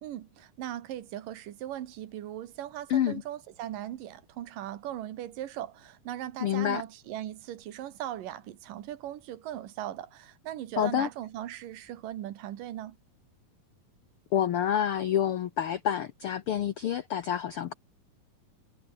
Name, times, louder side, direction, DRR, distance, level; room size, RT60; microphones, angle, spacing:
voice 1, 0.0-13.0, right 12 dB, 80° right, 3.0 m, -39 dB
voice 2, 2.9-3.2 6.4-6.8 10.8-11.1 14.3-17.7, left 10 dB, 80° left, 1.2 m, -28 dB
omnidirectional pair, 3.9 m